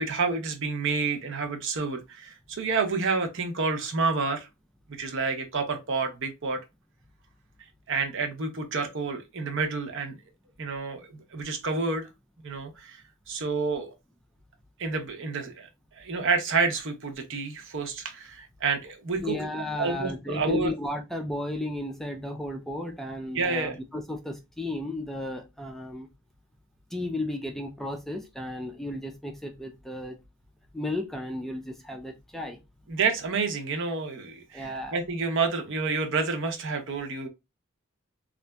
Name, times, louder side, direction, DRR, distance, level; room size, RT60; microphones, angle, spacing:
voice 1, 0.0-4.5 5.0-6.6 7.9-10.1 10.6-12.1 12.4-13.0 13.3-13.9 14.8-15.7 15.9-19.4 19.8-20.7 23.3-23.8 32.9-37.3, right 4 dB, 60° right, 0.8 m, -29 dB
voice 2, 19.2-26.1 26.9-30.2 30.7-32.6 34.5-34.9, left 1 dB, ahead, 0.4 m, -34 dB
3.9 x 2.4 x 2.2 m
head